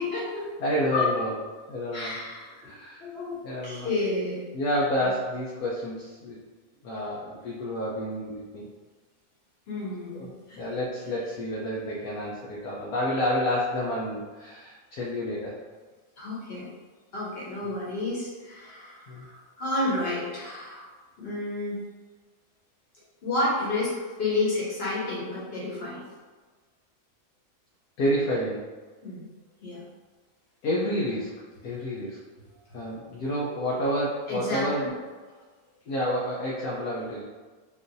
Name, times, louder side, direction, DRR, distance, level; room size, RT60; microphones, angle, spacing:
voice 1, 0.0-0.5 0.9-1.1 1.9-2.6 3.0-3.4 3.6-4.4 9.7-10.6 16.2-16.7 17.1-20.8 21.2-21.8 23.2-23.9 24.2-26.0 29.0-29.2 29.6-29.8 34.3-34.9, left 2 dB, 45° left, -6 dB, 1.1 m, -30 dB
voice 2, 0.6-1.3 1.7-2.2 2.6-3.0 3.4-3.9 4.5-6.4 6.8-8.7 10.1-10.3 10.6-15.6 17.6-17.7 19.1-19.3 28.0-28.6 30.6-32.2 32.7-34.9 35.9-37.2, equal, 75° left, -5 dB, 1.1 m, -29 dB
3.7 x 2.5 x 2.6 m, 1.4 s
omnidirectional pair, 1.6 m